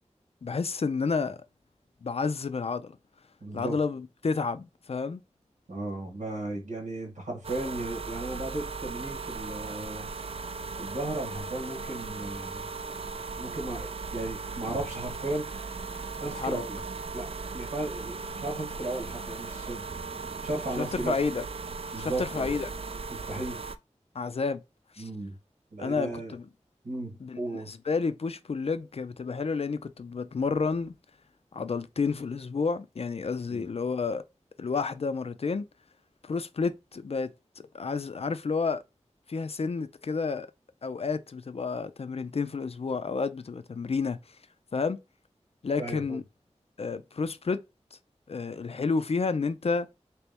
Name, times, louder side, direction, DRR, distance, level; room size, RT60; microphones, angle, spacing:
voice 1, 0.4-1.4 2.0-3.0 3.5-5.2 16.3-16.6 20.8-21.4 22.0-22.7 24.1-24.6 25.0-25.1 25.8-26.5 27.2-30.9 31.5-34.2 34.6-35.7 36.2-37.3 37.7-38.8 39.3-40.5 40.8-44.2 44.7-45.0 45.6-46.2 46.8-47.6 48.3-49.9, left 4 dB, 55° left, 0.4 m, -30 dB
voice 2, 3.4-3.8 5.7-10.1 10.8-12.6 13.4-15.7 16.2-16.8 17.1-19.8 20.4-21.2 21.9-22.5 23.1-23.6 25.0-25.4 25.7-26.3 26.8-27.7 33.5-33.7 45.8-46.2, right 2 dB, 90° right, 1.2 m, -35 dB
sound 1, 7.4-23.8, right 4 dB, 50° right, 0.3 m, -37 dB
2.9 x 2.9 x 3.4 m
wide cardioid pair, 45°, 12 cm